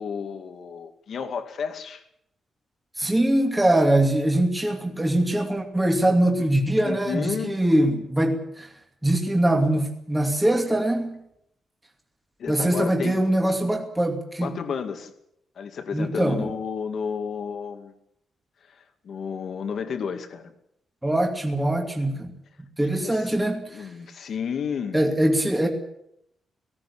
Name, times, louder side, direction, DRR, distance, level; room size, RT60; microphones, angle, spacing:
voice 1, 0.0-2.0 6.8-7.6 12.4-13.2 14.4-15.1 15.6-17.9 18.7-20.5 22.9-23.3 23.7-25.0, left 6 dB, 55° left, 7 dB, 2.3 m, -32 dB
voice 2, 3.0-8.7 9.0-11.2 12.5-14.5 15.9-16.5 21.0-22.3 22.8-23.9 24.9-25.7, right 1 dB, 10° right, 2 dB, 2.6 m, -22 dB
18.5 x 17.0 x 8.5 m, 0.76 s
wide cardioid pair, 165°, 0 cm